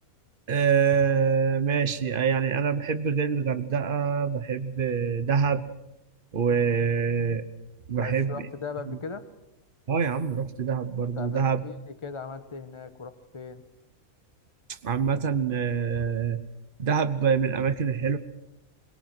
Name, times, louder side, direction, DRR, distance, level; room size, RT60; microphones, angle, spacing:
voice 1, 0.5-5.6 6.3-7.5 7.9-8.5 8.9-9.0 9.9-11.6 14.8-16.4 16.8-18.2, right 6 dB, 40° right, 12 dB, 1.1 m, -25 dB
voice 2, 7.9-9.3 11.2-13.6, left 5 dB, 25° left, 11 dB, 1.0 m, -38 dB
22.5 x 21.0 x 6.0 m, 0.91 s
omnidirectional pair, 1.5 m